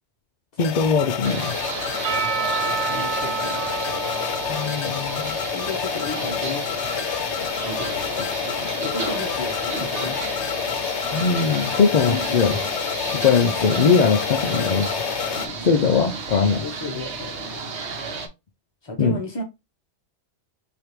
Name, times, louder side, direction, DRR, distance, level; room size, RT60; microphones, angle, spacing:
sound 1, 0.6-15.5, left 8 dB, 80° left, 0.9 m, -28 dB
voice 1, 0.6-1.6 4.5-5.4 8.6-8.7 11.1-12.6 13.2-15.0 15.6-16.6 19.0-19.2, left 5 dB, 50° left, 0.5 m, -20 dB
sound 2, 1.2-18.3, right 4 dB, 75° right, 1.1 m, -33 dB
Percussion / Church bell, 2.0-5.9, right 6 dB, 50° right, 1.2 m, -29 dB
voice 2, 2.6-4.2 5.5-7.1 7.6-8.1 8.8-10.2 11.9-12.5 15.3-16.2 16.6-17.6 18.8-19.4, left 2 dB, 25° left, 0.9 m, -34 dB
5.0 x 2.6 x 3.0 m
omnidirectional pair, 1.2 m